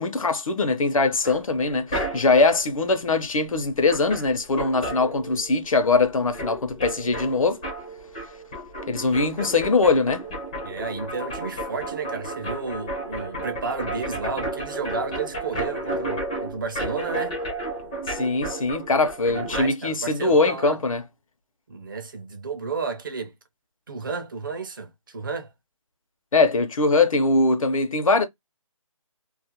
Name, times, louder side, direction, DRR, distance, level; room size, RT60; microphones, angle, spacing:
voice 1, 0.0-7.6 8.9-10.2 18.1-21.0 26.3-28.2, left 3 dB, 80° left, 0.7 m, -22 dB
sound 1, 1.2-2.5 3.5-3.6 3.8-5.7 5.9-19.7, right 1 dB, 10° left, 0.4 m, -32 dB
voice 2, 10.6-17.4 19.3-20.8 21.7-23.3 23.9-25.5, right 4 dB, 40° right, 0.5 m, -32 dB
2.4 x 2.0 x 2.8 m
hypercardioid pair, 165°, 17 cm